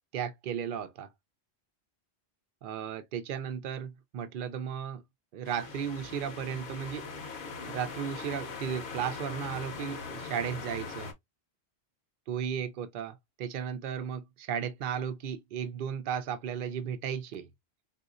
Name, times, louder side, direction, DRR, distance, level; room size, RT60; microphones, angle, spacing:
voice 1, 0.1-1.1 2.6-5.0 5.3-7.1 7.7-11.1 12.3-17.5, right 8 dB, 60° right, 0.7 m, -35 dB
sound 1, 5.4-11.1, left 4 dB, 55° left, 0.8 m, -41 dB
3.9 x 2.4 x 2.4 m
omnidirectional pair, 1.1 m